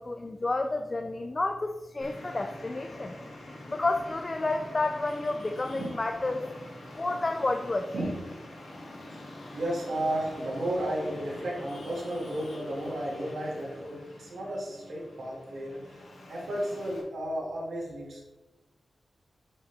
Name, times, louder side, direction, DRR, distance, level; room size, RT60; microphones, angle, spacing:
voice 1, 0.0-3.2 3.7-6.4 6.9-7.9, left 2 dB, 35° left, 5 dB, 0.4 m, -30 dB
Traffic noise roadway noise, 2.0-17.0, left 1 dB, 85° left, 2.0 m, -45 dB
voice 2, 7.9-8.2 9.1-18.2, right 1 dB, 90° right, -3 dB, 2.0 m, -33 dB
7.4 x 5.2 x 3.4 m, 1.1 s
wide cardioid pair, 100°, 0 cm